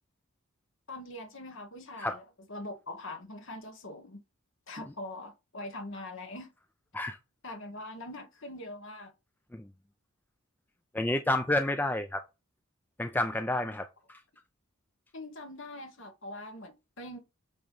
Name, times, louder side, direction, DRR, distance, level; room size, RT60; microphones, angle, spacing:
voice 1, 0.9-4.2 4.7-6.5 7.4-9.1 15.1-17.3, left 1 dB, 60° left, 1.4 m, -43 dB
voice 2, 10.9-12.2 13.0-14.2, left 1 dB, 10° left, 0.4 m, -30 dB
8.6 x 3.0 x 5.4 m
head